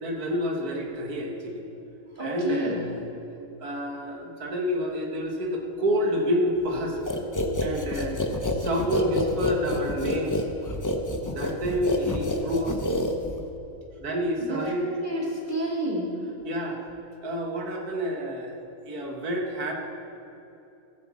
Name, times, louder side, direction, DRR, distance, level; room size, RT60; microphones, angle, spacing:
voice 1, 0.0-1.6 2.2-3.0 3.6-7.0 7.6-8.2 8.6-10.4 11.3-12.8 14.0-14.9 16.4-16.8 17.2-18.6 18.8-19.7, equal, 80° right, 1 dB, 1.9 m, -28 dB
voice 2, 2.2-2.8 14.4-16.1, right 1 dB, 30° right, -4 dB, 2.8 m, -30 dB
sound 1, 7.1-13.6, left 1 dB, 20° left, 0.5 m, -28 dB
14.0 x 7.9 x 7.3 m, 2.9 s
omnidirectional pair, 1.6 m